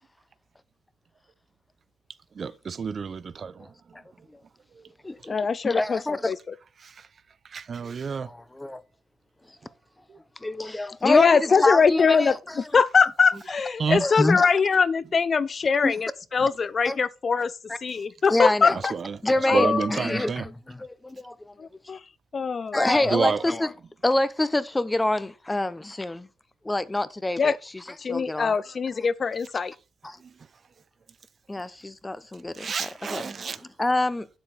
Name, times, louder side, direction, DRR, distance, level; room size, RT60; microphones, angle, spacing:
voice 1, 2.4-3.7 6.8-6.9 7.5-8.3 13.8-14.0 18.9-19.2 19.5-20.4 23.1-23.4 32.6-33.6, right 5 dB, 45° right, 0.6 m, -29 dB
voice 2, 3.6-4.0 5.0-5.4 5.6-6.3 8.2-8.8 10.4-12.6 14.0-14.5 15.8-15.9 16.9-17.0 17.7-17.8 18.3-18.8 19.2-21.5 22.7-23.7 24.0-26.3 26.6-28.6 30.0-30.2 31.5-34.3, left 2 dB, 15° left, 0.8 m, -27 dB
voice 3, 5.3-6.0 6.3-6.4 11.0-12.3 12.7-17.5 17.8-18.9 19.5-19.9 21.6-22.0 22.3-22.9 27.4-27.6 28.0-29.7, left 5 dB, 40° left, 0.5 m, -22 dB
8.7 x 7.6 x 4.1 m
cardioid pair, 90°, 0 cm